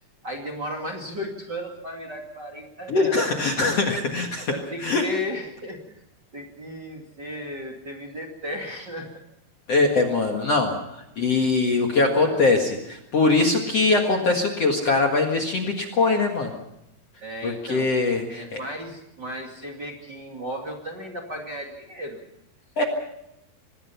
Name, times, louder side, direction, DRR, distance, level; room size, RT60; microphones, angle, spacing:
voice 1, 0.2-3.3 4.5-6.0 6.3-9.1 11.3-11.5 12.2-12.6 17.2-22.2, left 1 dB, 30° right, 0 dB, 2.2 m, -35 dB
voice 2, 2.9-4.5 4.8-5.1 9.7-12.8 13.1-16.5 17.4-18.6 22.8-22.9, left 3 dB, 50° left, 2 dB, 2.2 m, -22 dB
25.5 x 20.0 x 5.7 m, 0.84 s
omnidirectional pair, 4.8 m